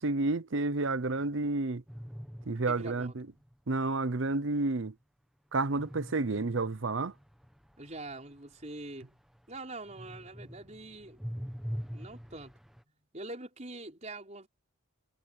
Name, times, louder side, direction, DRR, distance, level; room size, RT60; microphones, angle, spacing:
voice 1, 0.0-1.8 2.5-3.1 3.7-4.9 5.5-7.1, right 3 dB, 65° right, 0.8 m, -30 dB
sound 1, 1.9-3.5 5.8-9.6 9.9-12.8, equal, ahead, 1.2 m, -44 dB
voice 2, 2.7-3.1 7.8-9.1 9.5-11.2 11.9-12.5 12.9-14.5, right 2 dB, 35° right, 5.0 m, -44 dB
head